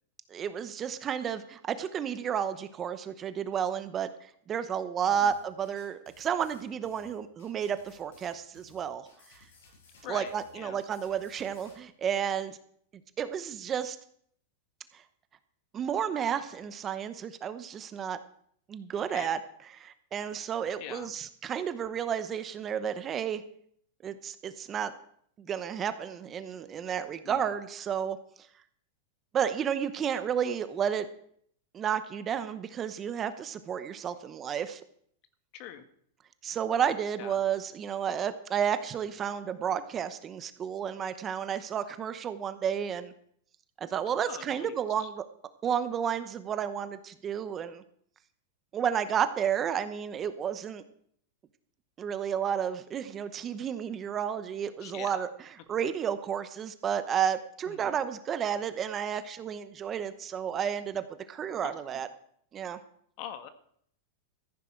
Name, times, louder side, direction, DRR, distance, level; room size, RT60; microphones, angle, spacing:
voice 1, 0.3-4.1 4.5-9.1 10.1-12.6 13.2-14.0 15.7-18.2 18.7-19.4 19.8-23.4 24.0-24.9 25.4-28.2 29.3-31.1 31.7-34.8 36.4-43.1 43.8-45.2 45.6-47.8 48.7-50.8 52.0-55.3 55.7-62.1 62.5-62.8, right 8 dB, 25° right, 11 dB, 0.9 m, -31 dB
sound 1, 5.1-11.8, left 3 dB, 80° left, 7.3 m, -59 dB
voice 2, 10.0-10.8 19.1-19.3 20.8-21.1 27.2-27.5 35.5-35.8 37.1-37.4 44.2-45.1 54.8-55.2 57.7-58.0 61.6-61.7 63.2-63.5, left 10 dB, 50° left, 9 dB, 1.4 m, -44 dB
14.5 x 10.5 x 4.6 m, 0.64 s
supercardioid pair, 130°, 0 cm